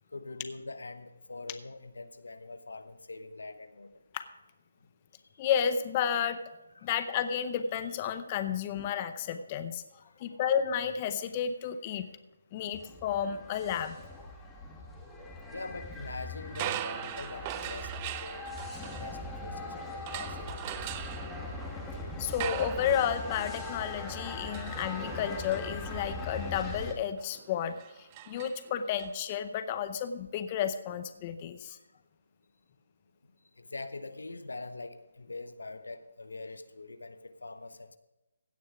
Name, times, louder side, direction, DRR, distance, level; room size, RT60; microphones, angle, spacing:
voice 1, 0.1-3.9 6.7-6.9 15.5-20.5 31.7-31.8 33.6-38.0, left 3 dB, 85° left, 11 dB, 1.0 m, -43 dB
voice 2, 5.4-6.4 6.8-9.8 10.2-12.0 12.5-14.0 22.2-31.8, left 8 dB, 25° left, 10 dB, 0.7 m, -32 dB
sound 1, 12.7-26.9, left 2 dB, 5° left, 1.5 m, -40 dB
sound 2, 16.5-19.6 20.1-29.1, right 13 dB, 25° right, 0.4 m, -42 dB
16.5 x 6.5 x 4.9 m, 0.98 s
hypercardioid pair, 160°, 0 cm